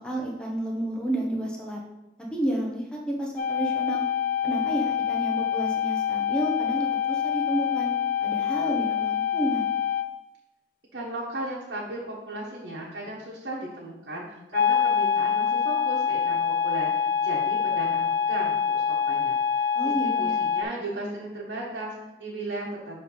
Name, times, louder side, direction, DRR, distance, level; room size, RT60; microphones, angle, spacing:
voice 1, 0.0-1.8 2.3-4.0 4.4-7.9 8.2-9.7 19.7-20.4, right 1 dB, 5° left, -1 dB, 1.1 m, -30 dB
sound 1, 3.4-10.1 14.5-20.6, left 7 dB, 50° left, 0.4 m, -25 dB
voice 2, 10.9-19.7 20.0-23.0, right 1 dB, 80° right, -6 dB, 1.3 m, -36 dB
6.4 x 3.6 x 5.6 m, 0.97 s
head